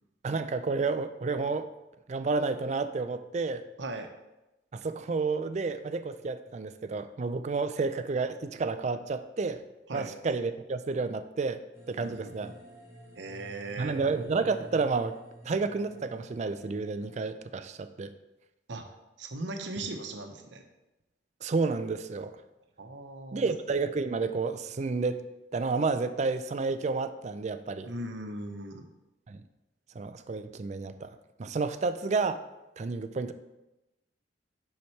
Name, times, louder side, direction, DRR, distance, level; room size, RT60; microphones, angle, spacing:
voice 1, 0.2-1.7 2.1-3.6 4.7-9.6 9.9-11.6 11.9-12.5 13.8-15.2 15.4-18.1 21.4-22.4 23.3-25.2 25.5-27.9 29.3-29.4 29.9-31.1 31.4-32.4 32.8-33.3, right 4 dB, 40° right, 10 dB, 0.4 m, -30 dB
sound 1, 11.7-17.3, equal, 15° right, 1.5 m, -50 dB
voice 2, 12.0-12.5 13.2-13.9 18.7-18.9 19.2-20.6 22.8-23.5 27.8-28.9, right 2 dB, 90° right, 4 dB, 0.8 m, -38 dB
7.1 x 5.8 x 3.2 m, 0.98 s
head